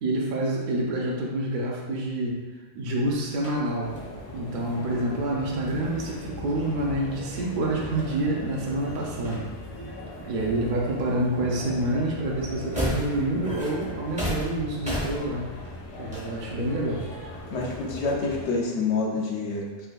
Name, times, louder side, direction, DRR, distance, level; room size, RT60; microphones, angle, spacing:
voice 1, 0.0-2.4 2.7-3.9 4.3-9.4 10.3-15.5 16.0-17.0, right 1 dB, 60° right, -3 dB, 0.5 m, -27 dB
sound 1, 3.0-4.1 5.6-8.8 9.1-10.0 10.3-11.2 11.5-18.5, equal, 10° right, 0.5 m, -37 dB
sound 2, 3.8-18.5, left 1 dB, 90° left, 1.4 m, -39 dB
voice 2, 17.5-19.9, left 3 dB, 70° left, -1 dB, 0.9 m, -27 dB
3.4 x 3.2 x 2.2 m, 1.3 s
omnidirectional pair, 1.2 m